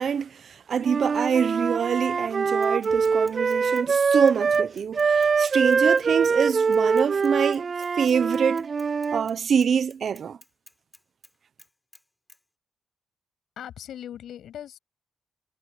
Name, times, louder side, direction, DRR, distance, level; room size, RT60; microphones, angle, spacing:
voice 1, 0.0-8.7 9.1-10.4, right 7 dB, 60° right, 1.1 m, -25 dB
Wind instrument woodwind instrument, 0.8-4.7 4.9-9.3, right 5 dB, 45° right, 0.3 m, -23 dB
Bicycle / Mechanisms, 2.6-9.4 9.6-11.3 11.6-12.0 12.3-12.4, left 1 dB, 10° left, 5.0 m, -52 dB
voice 2, 13.6-14.8, left 10 dB, 75° left, 7.7 m, -39 dB
cardioid pair, 80°, 0 cm